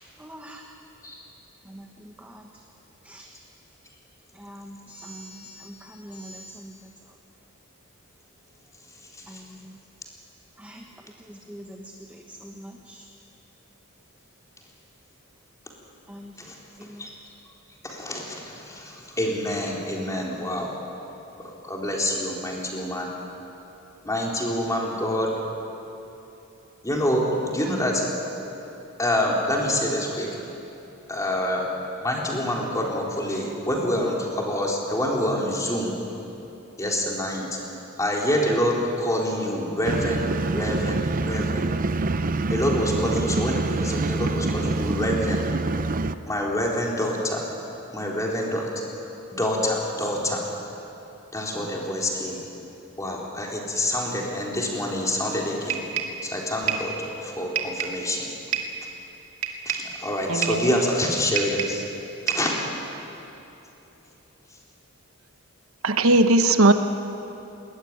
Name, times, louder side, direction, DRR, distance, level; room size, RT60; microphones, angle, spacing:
voice 1, 0.2-0.6 1.7-2.4 3.0-3.3 4.3-6.7 9.3-9.7 10.6-10.8 11.3-13.0 16.1-16.3 16.8-17.1, equal, 5° right, 1 dB, 1.3 m, -43 dB
voice 2, 17.8-20.7 21.4-23.1 24.0-25.3 26.8-28.0 29.0-30.3 31.1-31.7 31.9-36.0 36.8-37.6 38.0-40.2 40.5-41.7 42.5-45.4 46.3-47.4 47.9-48.7 49.3-50.4 51.3-52.4 53.0-55.8 56.2-58.3 59.7-61.9 62.3-62.5, left 1 dB, 15° left, -2 dB, 3.8 m, -26 dB
sound 1, 39.8-46.2, right 3 dB, 40° right, 0.6 m, -26 dB
sound 2, 55.7-56.2 56.7-56.9 57.6-58.0 58.5-58.8 59.4-59.9 60.4-60.7 61.4-61.8 62.3-62.6, right 8 dB, 65° right, 2.3 m, -28 dB
voice 3, 60.3-60.7 65.8-66.7, right 2 dB, 85° right, 8 dB, 1.2 m, -18 dB
21.0 x 19.5 x 9.6 m, 3.0 s
head